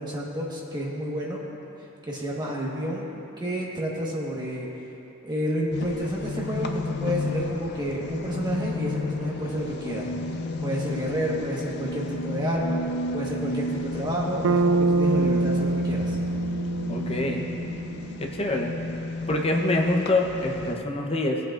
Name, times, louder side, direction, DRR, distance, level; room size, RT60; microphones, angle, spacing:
voice 1, 0.0-1.5 2.1-3.1 3.4-4.7 5.2-16.2, equal, 20° right, -4 dB, 1.4 m, -30 dB
sound 1, 5.7-20.8, left 2 dB, 55° left, 0.4 m, -33 dB
Bass guitar, 14.4-18.5, right 3 dB, 75° right, 0.3 m, -25 dB
voice 2, 16.9-17.4 18.2-18.7 19.3-21.4, left 2 dB, 30° left, 1 dB, 0.9 m, -25 dB
17.0 x 8.1 x 2.5 m, 2.9 s
head